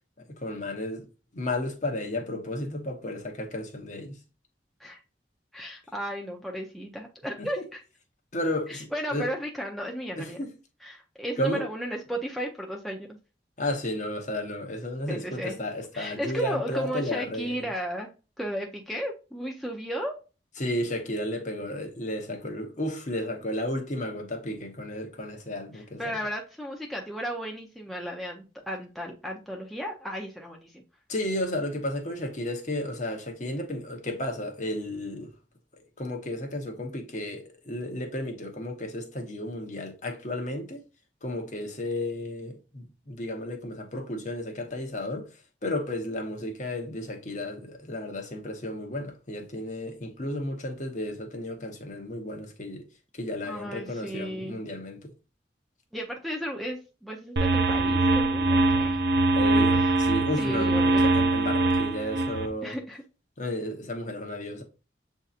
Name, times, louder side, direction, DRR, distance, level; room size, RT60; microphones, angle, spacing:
voice 1, 0.3-1.1 1.3-4.2 7.4-7.7 8.3-9.3 10.2-10.5 11.4-11.7 13.6-17.7 20.6-26.2 31.1-35.3 35.8-40.8 41.2-45.3 45.6-52.8 53.1-55.0 59.3-62.7 63.4-64.6, left 1 dB, 40° left, 0.9 m, -33 dB
voice 2, 5.5-7.8 8.7-10.4 10.8-13.2 15.1-15.6 15.9-18.1 18.4-20.2 25.7-30.8 53.5-54.6 55.9-59.0 59.8-60.0 60.4-61.2 62.6-63.0, equal, ahead, 0.5 m, -34 dB
sound 1, 57.4-62.5, right 2 dB, 60° right, 0.6 m, -23 dB
7.7 x 2.7 x 2.4 m
head